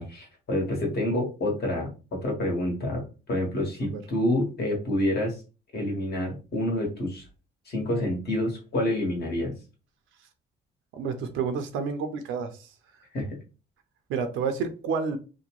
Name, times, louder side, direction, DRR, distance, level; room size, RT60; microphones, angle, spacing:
voice 1, 0.0-5.4 5.7-7.2 7.6-9.5 13.1-13.4, left 1 dB, 55° left, 1.4 m, -28 dB
voice 2, 10.9-12.7 14.1-15.2, right 5 dB, 90° right, 0.5 m, -29 dB
2.8 x 2.1 x 2.9 m
cardioid pair, 90°, 20 cm